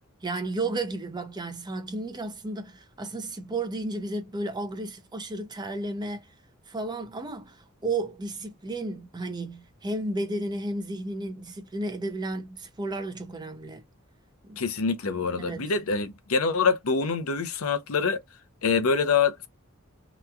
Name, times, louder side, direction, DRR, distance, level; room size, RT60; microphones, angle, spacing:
voice 1, 0.2-6.3 6.7-13.8 14.4-14.6 15.4-15.7, right 2 dB, 20° right, 0.5 m, -33 dB
voice 2, 14.6-18.2 18.6-19.5, left 5 dB, 80° left, 0.6 m, -25 dB
3.0 x 2.2 x 2.4 m
head